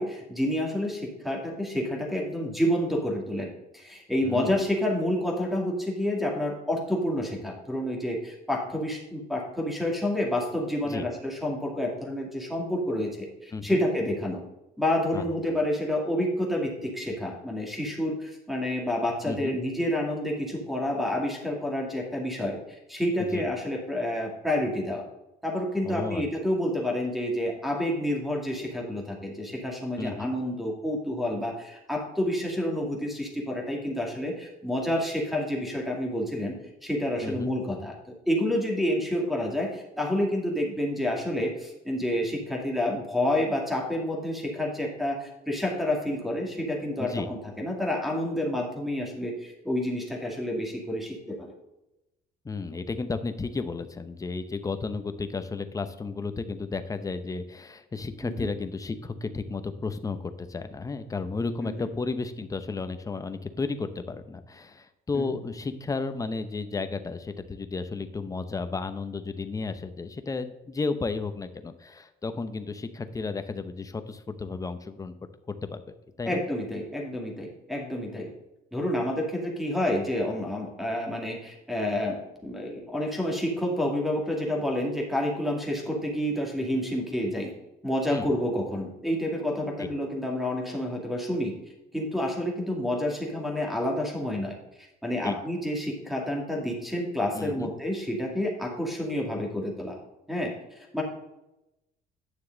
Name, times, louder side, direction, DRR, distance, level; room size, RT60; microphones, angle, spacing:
voice 1, 0.0-14.4 14.8-22.6 22.9-25.0 25.4-37.9 38.3-51.5 58.2-58.5 61.6-61.9 65.1-65.4 76.3-78.3 78.7-87.5 87.8-91.5 91.9-94.6 95.0-100.0 100.3-100.5 100.9-101.0, left 1 dB, ahead, 0 dB, 2.3 m, -29 dB
voice 2, 4.2-4.6 10.8-11.1 13.5-13.8 15.1-15.2 19.2-19.6 23.2-23.4 25.8-26.2 30.0-30.3 37.2-37.5 47.0-47.3 52.4-75.1 75.5-75.8 76.2-76.4 88.1-88.3 89.8-89.9 95.2-95.4 97.3-97.7, left 4 dB, 20° left, 10 dB, 0.7 m, -33 dB
9.4 x 6.5 x 3.9 m, 0.92 s
cardioid pair, 110°, 17 cm